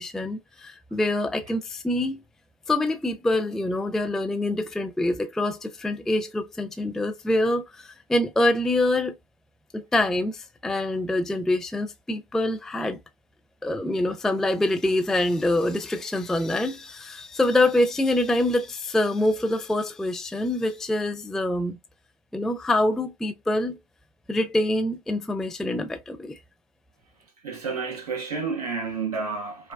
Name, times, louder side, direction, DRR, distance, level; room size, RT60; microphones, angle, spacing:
voice 1, 0.0-2.2 2.7-9.1 9.7-13.0 13.6-21.8 22.3-23.8 24.3-26.4, left 1 dB, ahead, 0.3 m, -25 dB
voice 2, 27.4-29.7, right 4 dB, 85° right, 1.4 m, -30 dB
4.8 x 2.1 x 2.3 m
hypercardioid pair, 85°, 19 cm